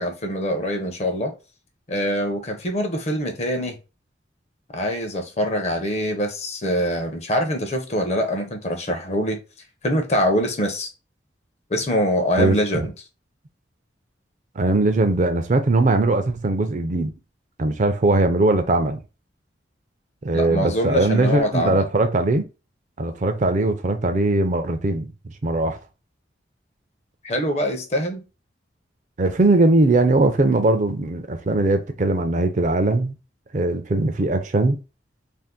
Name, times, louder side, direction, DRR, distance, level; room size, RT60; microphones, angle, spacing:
voice 1, 0.0-1.3 1.9-3.8 4.7-9.4 9.8-10.9 11.7-12.9 20.3-21.9 27.2-28.2, equal, 35° left, 0.6 m, -24 dB
voice 2, 12.4-12.9 14.6-17.1 17.6-19.0 20.2-22.4 23.0-25.1 25.4-25.8 29.2-33.1 33.5-34.8, right 2 dB, 40° right, 0.4 m, -20 dB
2.6 x 2.5 x 3.5 m
head